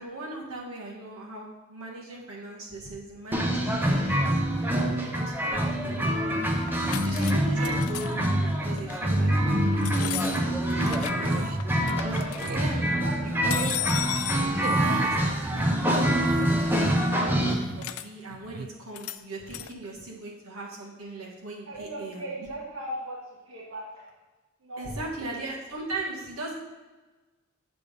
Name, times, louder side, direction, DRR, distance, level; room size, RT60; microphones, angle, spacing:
voice 1, 0.0-4.0 4.3-4.5 5.0-6.7 7.0-11.2 12.0-12.2 12.5-12.9 13.2-13.7 14.7-22.2 24.8-26.5, right 2 dB, 90° right, -3 dB, 1.5 m, -38 dB
sound 1, 3.3-17.5, equal, 10° right, 0.6 m, -25 dB
sound 2, 6.6-7.3 7.6-8.3 8.8-9.0 9.8-11.3 11.6-12.6 13.5-14.5 17.8-18.1 18.9-19.2 19.5-19.7, left 13 dB, 80° left, 0.3 m, -34 dB
voice 2, 10.9-11.2 11.8-12.0 12.9-14.3 21.6-23.2 23.4-24.1 24.6-25.0 25.3-25.5, right 1 dB, 70° right, -5 dB, 1.3 m, -39 dB
sound 3, 11.1-11.6 12.3-12.7 13.4-13.8 14.6-15.3 16.0-16.7 17.3-17.9 18.3-18.7, right 4 dB, 40° right, 0.3 m, -37 dB
7.6 x 3.4 x 5.2 m, 1.2 s
head